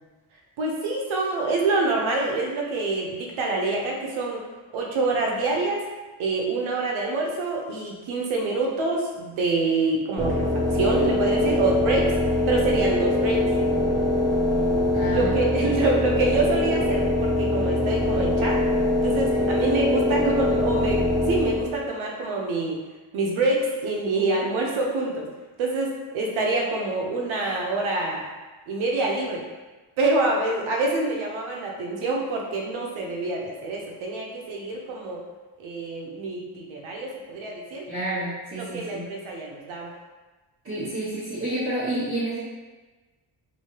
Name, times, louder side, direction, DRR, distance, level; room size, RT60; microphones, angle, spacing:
voice 1, 0.6-4.4 4.7-5.8 6.2-12.1 12.5-13.4 15.0-18.6 19.0-22.8 23.1-25.3 25.6-28.3 28.7-29.4 30.0-35.2 35.6-37.8 38.6-39.9, right 2 dB, 90° right, -1 dB, 0.8 m, -26 dB
sound 1, 10.2-21.9, left 1 dB, 5° right, 0.3 m, -23 dB
voice 2, 14.9-15.7 19.3-19.4 24.5-24.6 37.9-39.0 40.6-42.4, right 1 dB, 30° right, -13 dB, 1.0 m, -30 dB
3.2 x 2.8 x 2.8 m, 1.2 s
cardioid pair, 125°, 47 cm